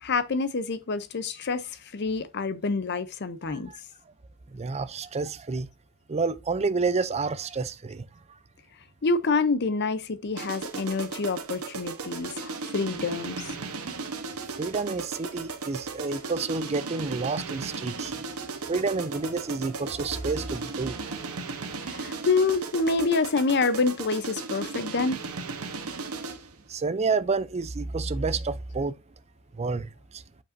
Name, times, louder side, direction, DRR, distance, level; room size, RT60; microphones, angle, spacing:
voice 1, 0.0-3.7 9.0-13.4 21.9-25.2, left 4 dB, 50° left, 0.7 m, -27 dB
voice 2, 3.4-3.8 4.5-5.7 6.1-8.1 14.6-18.3 18.7-21.3 21.7-21.8 26.7-28.9 29.5-30.2, right 4 dB, 30° right, 0.4 m, -29 dB
sound 1, 10.4-26.5, right 4 dB, 90° right, 1.1 m, -36 dB
7.5 x 5.3 x 2.6 m
head